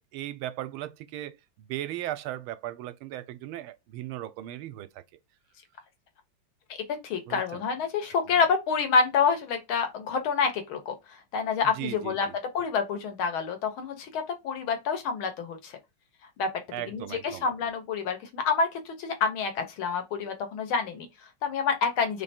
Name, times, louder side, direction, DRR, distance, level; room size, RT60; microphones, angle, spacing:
voice 1, 0.0-4.9 7.3-7.6 11.6-12.3 16.7-17.4, right 13 dB, 85° right, 1.4 m, -37 dB
voice 2, 7.0-12.3 12.5-15.8 16.4-16.5 16.9-22.2, left 5 dB, 75° left, 1.8 m, -28 dB
3.8 x 3.3 x 4.2 m
omnidirectional pair, 2.3 m